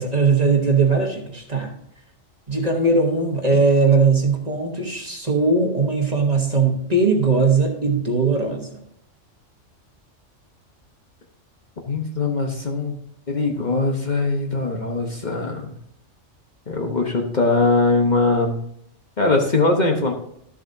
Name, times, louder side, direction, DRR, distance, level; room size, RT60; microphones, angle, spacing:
voice 1, 0.0-1.7 2.5-8.8, right 4 dB, 35° right, 2 dB, 1.2 m, -19 dB
voice 2, 11.9-12.9 13.3-15.7 16.7-18.6 19.2-20.1, left 3 dB, 40° left, 1 dB, 1.1 m, -21 dB
12.5 x 7.4 x 2.7 m, 0.73 s
omnidirectional pair, 1.3 m